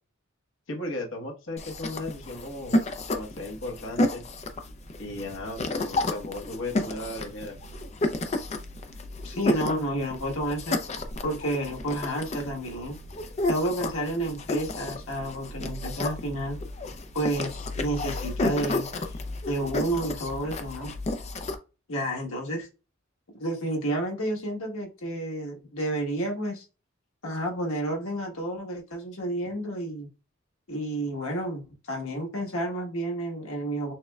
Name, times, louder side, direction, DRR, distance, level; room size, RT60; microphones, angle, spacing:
voice 1, 0.7-2.8 3.1-4.2 5.0-7.6, left 2 dB, 65° left, 1 dB, 1.1 m, -36 dB
sound 1, 1.6-21.6, left 2 dB, 35° left, 0.4 m, -31 dB
voice 2, 9.2-10.8 11.2-13.0 13.5-16.6 17.1-18.9 19.5-20.9 21.9-22.7 23.4-26.6 27.2-30.1 30.7-33.9, right 1 dB, 90° left, 0 dB, 1.4 m, -30 dB
6.3 x 2.2 x 2.3 m, 0.31 s
head